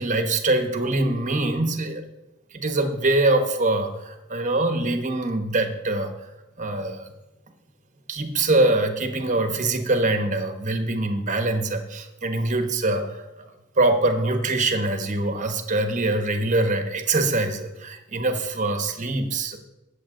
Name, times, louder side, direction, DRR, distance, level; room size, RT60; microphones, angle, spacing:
voice 1, 0.0-2.0 2.5-6.1 6.6-7.1 8.1-13.4 13.8-19.6, right 2 dB, 40° right, 6 dB, 1.3 m, -23 dB
19.0 x 7.4 x 3.9 m, 1.0 s
head